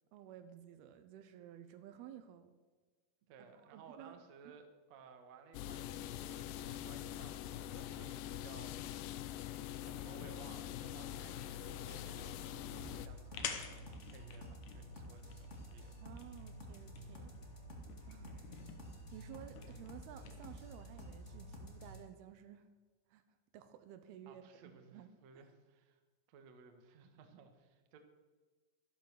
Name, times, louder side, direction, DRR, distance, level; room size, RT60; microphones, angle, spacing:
voice 1, 0.1-2.5 3.4-4.2 16.0-17.3 18.1-18.4 19.1-22.7 23.1-23.2 23.5-25.1, right 10 dB, 85° right, 10 dB, 2.8 m, -54 dB
voice 2, 3.3-15.9 18.2-18.7 24.3-26.0 26.3-28.0, right 5 dB, 60° right, 6 dB, 2.1 m, -59 dB
sound 1, 5.5-13.1, left 11 dB, 90° left, 1.9 m, -44 dB
sound 2, 11.9-20.5, left 8 dB, 65° left, 2.1 m, -51 dB
sound 3, 12.6-22.0, equal, 30° left, 1.4 m, -51 dB
12.0 x 12.0 x 6.6 m, 1.3 s
omnidirectional pair, 4.5 m